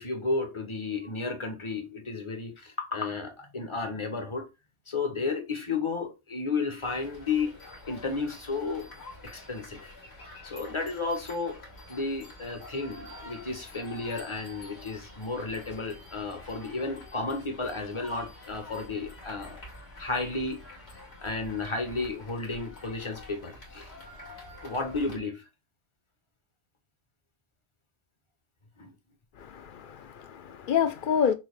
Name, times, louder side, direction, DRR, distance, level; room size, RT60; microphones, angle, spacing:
voice 1, 0.0-4.5 4.9-7.5 7.9-8.9 9.2-9.9 10.4-19.6 20.0-20.6 21.2-23.9 24.6-25.4 28.8-28.9, left 3 dB, 30° left, 0.9 m, -33 dB
sound 1, 6.8-25.2, left 2 dB, 80° left, 1.9 m, -47 dB
voice 2, 29.4-31.3, left 7 dB, 60° left, 0.6 m, -28 dB
5.6 x 2.4 x 3.2 m
omnidirectional pair, 1.1 m